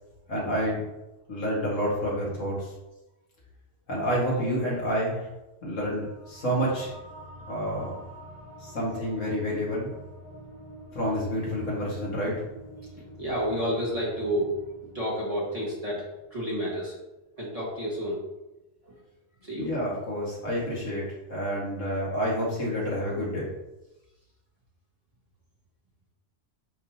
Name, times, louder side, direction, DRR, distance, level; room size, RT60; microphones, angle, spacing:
voice 1, 0.3-0.8 1.3-2.7 3.9-5.2 5.6-6.9 7.5-8.0 8.6-9.9 10.9-12.3 19.6-21.0 21.3-23.5, equal, 85° left, -5 dB, 2.3 m, -29 dB
sound 1, 5.9-16.9, right 1 dB, 25° left, 1.3 m, -47 dB
voice 2, 13.0-16.0 16.3-16.9 17.4-18.2 18.8-18.9 19.4-19.7, equal, 30° right, -6 dB, 2.0 m, -30 dB
9.8 x 3.7 x 2.9 m, 0.99 s
omnidirectional pair, 1.3 m